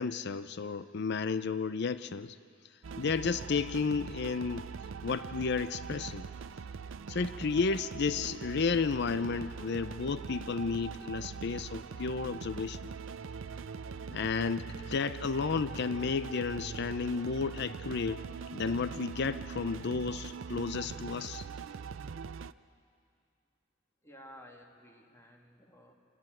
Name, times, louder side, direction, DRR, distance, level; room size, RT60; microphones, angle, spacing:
voice 1, 0.0-2.4 3.0-4.7 5.0-6.2 7.1-12.8 14.1-18.2 18.5-21.5, left 5 dB, 55° left, 14 dB, 0.5 m, -32 dB
sound 1, 2.8-22.5, right 5 dB, 70° right, 0.5 m, -42 dB
voice 2, 24.0-25.9, equal, 15° left, 1 dB, 2.1 m, -54 dB
27.5 x 13.5 x 9.2 m, 2.3 s
head